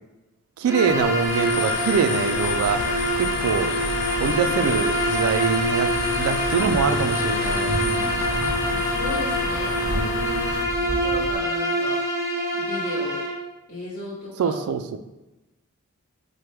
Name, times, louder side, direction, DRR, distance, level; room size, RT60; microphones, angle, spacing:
Bowed string instrument, 0.6-13.4, equal, 15° right, 0.5 m, -26 dB
voice 1, 0.6-2.8 3.1-3.7 4.2-8.3 9.9-10.2 14.4-15.0, right 6 dB, 80° right, 13 dB, 0.3 m, -24 dB
sound 1, 0.9-10.6, left 5 dB, 85° left, 0.3 m, -30 dB
sound 2, 2.3-11.4, equal, 10° left, 1.1 m, -33 dB
voice 2, 7.7-8.2 8.7-12.0 12.5-13.2 13.7-14.6, left 2 dB, 40° left, -11 dB, 1.0 m, -36 dB
4.4 x 2.1 x 3.3 m, 1.0 s
head